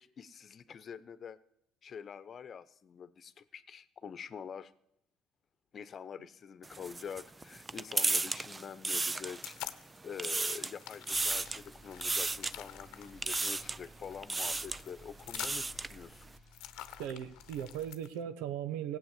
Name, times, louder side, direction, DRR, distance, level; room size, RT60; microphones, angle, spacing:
voice 1, 0.0-1.4 1.8-4.7 5.7-16.3, left 7 dB, 45° left, 1.0 m, -46 dB
sound 1, 6.6-9.7 10.0-10.8 11.1-11.6 12.0-12.5 13.2-13.8 14.2-14.8 15.2-16.0, right 3 dB, 20° right, 0.5 m, -34 dB
sound 2, 8.9-10.0 10.3-18.2, left 13 dB, 75° left, 0.9 m, -47 dB
sound 3, 11.1-17.9, right 1 dB, 45° right, 2.7 m, -57 dB
voice 2, 17.0-19.0, right 10 dB, 85° right, 0.9 m, -38 dB
16.5 x 8.3 x 8.4 m
supercardioid pair, 85°, 0 cm